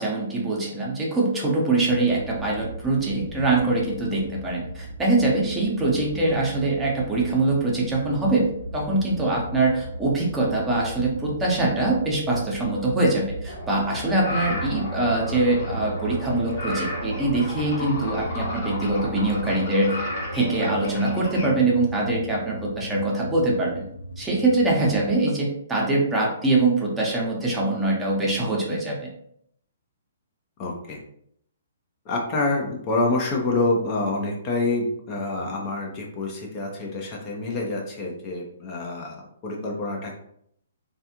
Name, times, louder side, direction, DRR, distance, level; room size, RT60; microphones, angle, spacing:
voice 1, 0.0-20.0 20.3-23.8 24.2-29.1, right 2 dB, 10° right, -4 dB, 0.9 m, -23 dB
Neutral ambient drone, 1.9-19.5, right 1 dB, 45° right, 0.4 m, -37 dB
voice 2, 5.9-6.4 14.5-14.9 30.6-31.0 32.1-40.2, left 2 dB, 30° left, -1 dB, 0.7 m, -27 dB
sound 1, 13.5-21.5, left 1 dB, 45° left, 1.0 m, -34 dB
sound 2, 14.4-25.2, right 1 dB, 80° left, 0.3 m, -38 dB
3.3 x 2.4 x 2.8 m, 0.69 s
figure-of-eight pair, 120°, 0 cm